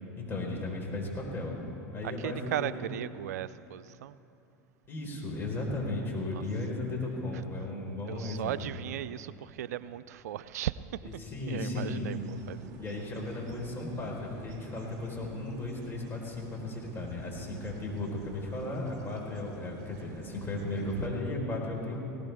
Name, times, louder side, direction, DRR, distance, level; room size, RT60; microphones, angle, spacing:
voice 1, 0.2-1.5 1.9-2.7 4.9-8.5 11.0-12.1 12.8-22.0, left 2 dB, 25° left, -2 dB, 4.5 m, -35 dB
voice 2, 2.0-4.2 6.3-6.4 8.0-11.1 11.5-12.8, right 12 dB, 75° right, 16 dB, 0.4 m, -37 dB
sound 1, 12.0-21.1, right 5 dB, 45° right, 2.6 m, -49 dB
19.0 x 18.0 x 3.6 m, 2.8 s
hypercardioid pair, 80°, 9 cm